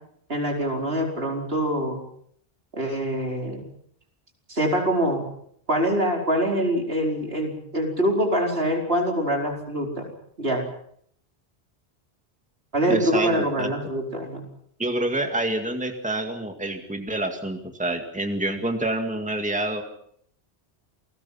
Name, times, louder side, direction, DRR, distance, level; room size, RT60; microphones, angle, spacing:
voice 1, 0.3-2.0 2.7-3.6 4.5-5.2 5.7-10.1 10.4-10.6 12.7-14.4, equal, 75° right, 1 dB, 5.1 m, -24 dB
voice 2, 12.9-13.7 14.8-19.8, right 1 dB, 5° right, 5 dB, 2.1 m, -27 dB
28.5 x 20.0 x 5.8 m, 0.65 s
omnidirectional pair, 1.0 m